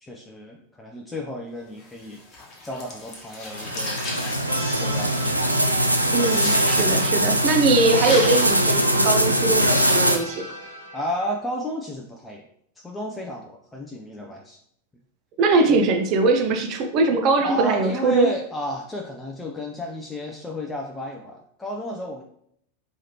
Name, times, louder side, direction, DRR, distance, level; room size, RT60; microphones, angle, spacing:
voice 1, 0.0-5.9 10.9-12.5 12.8-14.6 15.7-15.8 17.4-22.2, equal, 10° left, 0 dB, 0.5 m, -33 dB
sound 1, 1.8-8.5, left 2 dB, 30° left, 1.1 m, -36 dB
sound 2, 3.5-10.2, right 1 dB, 90° right, 0.3 m, -21 dB
sound 3, 4.5-11.3, equal, 85° left, 1.1 m, -35 dB
voice 2, 6.1-10.5 15.4-18.3, right 3 dB, 40° right, 5 dB, 0.6 m, -21 dB
4.8 x 3.2 x 2.9 m, 0.67 s
figure-of-eight pair, 90°, 0 cm